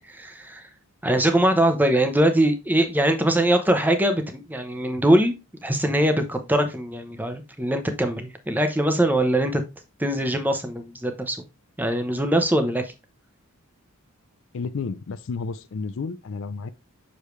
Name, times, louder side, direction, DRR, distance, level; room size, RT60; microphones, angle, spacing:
voice 1, 0.1-0.7 1.0-9.6 10.0-11.4 11.8-12.9, right 1 dB, 10° right, 0.8 m, -22 dB
voice 2, 14.5-16.7, left 4 dB, 60° left, 0.4 m, -31 dB
6.5 x 5.1 x 3.2 m
head